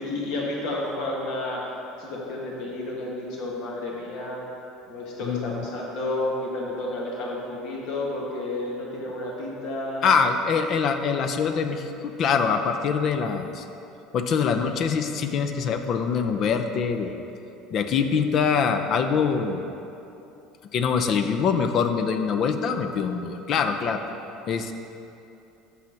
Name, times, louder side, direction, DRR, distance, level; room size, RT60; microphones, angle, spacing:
voice 1, 0.0-1.7 2.0-4.4 4.9-10.0, left 2 dB, 70° left, -3 dB, 1.7 m, -31 dB
voice 2, 5.2-5.7 10.0-13.6 14.1-17.2 17.7-19.6 20.7-24.0 24.5-24.7, left 6 dB, 50° left, 7 dB, 0.6 m, -24 dB
6.3 x 5.8 x 5.8 m, 2.9 s
supercardioid pair, 105°, 0 cm